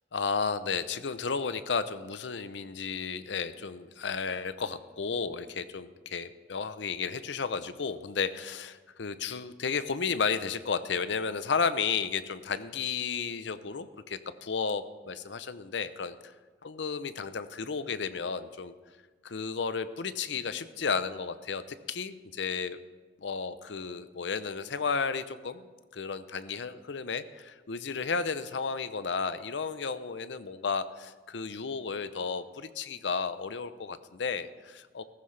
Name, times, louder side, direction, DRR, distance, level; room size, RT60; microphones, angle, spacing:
voice 1, 0.1-16.2 16.6-18.7 19.2-21.6 21.9-22.8 23.2-25.6 25.9-35.0, left 5 dB, 80° left, 13 dB, 0.6 m, -33 dB
15.0 x 14.5 x 3.3 m, 1.4 s
head